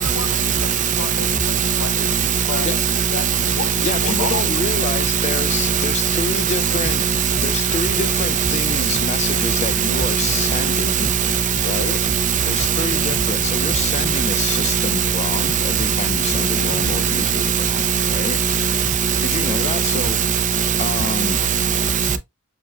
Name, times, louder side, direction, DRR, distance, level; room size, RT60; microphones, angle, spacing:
voice 1, 0.0-2.8 3.1-4.9, left 5 dB, 75° left, 0.6 m, -31 dB
sound 1, 3.5-17.7, left 1 dB, 60° right, 2.1 m, -44 dB
voice 2, 3.8-7.0 7.4-11.1 11.6-12.0 12.5-18.4 19.2-20.2 20.8-21.4, left 4 dB, 30° left, 0.3 m, -28 dB
voice 3, 5.5-5.8 7.0-7.2 8.0-8.1 8.5-8.6 9.2-9.7 10.1-10.4 10.7-10.9 11.3-11.4 12.2-13.1 14.7-14.8 16.2-16.7 17.3-17.4 17.9-18.1 18.4-18.7 19.5-19.6 20.6-20.7 21.2-22.2, right 7 dB, 35° right, 0.5 m, -20 dB
7.1 x 2.4 x 2.2 m
head